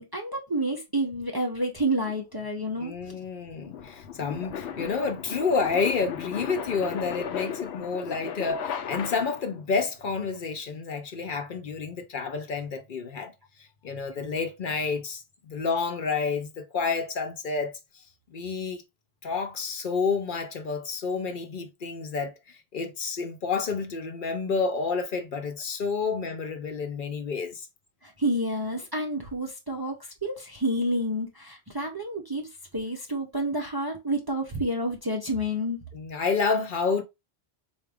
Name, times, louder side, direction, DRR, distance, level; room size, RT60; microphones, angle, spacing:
voice 1, 0.0-2.9 28.0-32.5 32.7-35.8, right 1 dB, 30° right, 0.5 m, -29 dB
sound 1, 2.0-9.6, left 8 dB, 85° left, 0.9 m, -36 dB
voice 2, 2.8-13.3 13.8-17.7 18.3-18.8 19.2-27.7 35.9-37.0, left 5 dB, 55° left, 0.8 m, -29 dB
4.2 x 2.4 x 3.3 m
omnidirectional pair, 1.1 m